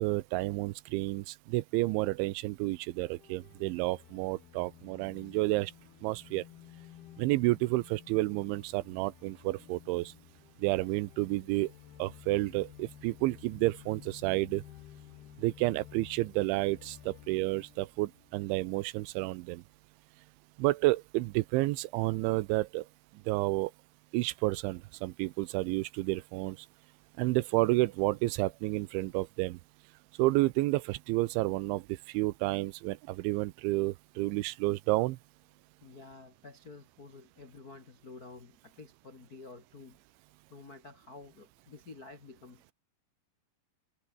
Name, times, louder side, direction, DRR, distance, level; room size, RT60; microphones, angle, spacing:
voice 1, 0.0-5.7 6.0-6.4 7.2-10.1 10.6-11.7 12.0-14.6 15.4-19.6 20.6-22.9 23.3-23.7 24.1-26.6 27.2-29.6 30.2-35.2, right 20 dB, 80° right, 3.0 m, -30 dB
sound 1, 2.8-18.9, left 13 dB, 70° left, 2.9 m, -54 dB
voice 2, 35.8-40.0 40.5-42.7, left 3 dB, 50° left, 1.0 m, -50 dB
omnidirectional pair, 5.5 m